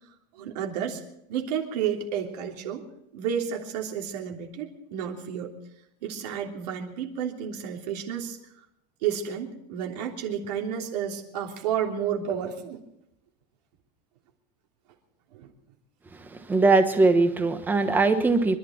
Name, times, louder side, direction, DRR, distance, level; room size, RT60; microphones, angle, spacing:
voice 1, 0.3-1.0 1.3-2.8 3.1-5.5 6.0-8.4 9.0-12.8 15.3-15.5, right 8 dB, 75° right, 0 dB, 3.3 m, -31 dB
voice 2, 16.2-18.6, right 3 dB, 10° right, 7 dB, 1.2 m, -21 dB
25.5 x 12.0 x 4.5 m, 0.80 s
supercardioid pair, 175°, 21 cm